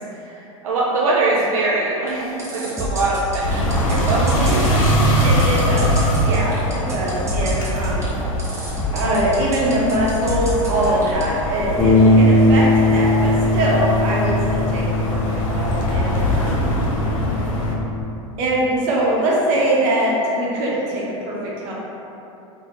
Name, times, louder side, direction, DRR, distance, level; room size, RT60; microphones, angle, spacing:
voice 1, 0.1-4.6 11.9-12.1, right 2 dB, 85° right, -6 dB, 0.5 m, -23 dB
sound 1, 2.1-11.2, right 1 dB, 15° right, 0.9 m, -27 dB
sound 2, 3.4-17.7, equal, 80° left, 0.7 m, -23 dB
voice 2, 4.4-6.0 6.2-8.1 8.9-14.8 15.1-16.7 18.4-21.7, right 1 dB, 55° right, -5 dB, 1.0 m, -22 dB
Bass guitar, 11.8-18.0, left 1 dB, ahead, 1.3 m, -19 dB
4.2 x 2.5 x 3.0 m, 2.9 s
hypercardioid pair, 105°, 17 cm